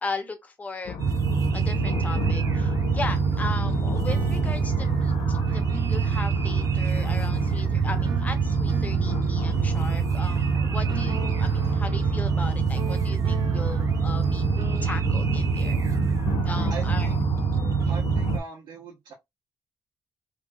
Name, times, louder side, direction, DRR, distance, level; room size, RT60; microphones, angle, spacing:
voice 1, 0.0-1.0 1.5-14.4 14.8-15.8 16.4-17.1, left 3 dB, 20° left, 0.5 m, -37 dB
sound 1, 0.9-18.4, left 7 dB, 75° left, 0.3 m, -36 dB
sound 2, 1.0-18.4, right 6 dB, 40° right, 0.4 m, -25 dB
sound 3, 3.8-14.8, right 6 dB, 55° right, 0.8 m, -42 dB
voice 2, 16.7-17.2 17.9-19.1, right 5 dB, 80° right, 1.0 m, -40 dB
2.9 x 2.7 x 2.3 m
wide cardioid pair, 165°, 8 cm